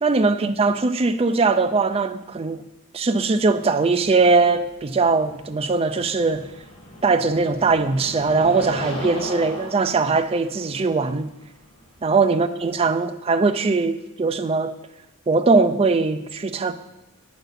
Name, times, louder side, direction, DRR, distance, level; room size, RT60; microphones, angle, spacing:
voice 1, 0.0-2.6 2.9-6.5 7.0-11.3 12.0-14.7 15.3-16.7, right 4 dB, 25° right, 0.4 m, -20 dB
sound 1, 4.0-12.9, left 1 dB, 25° left, 1.5 m, -38 dB
9.1 x 5.3 x 5.8 m
head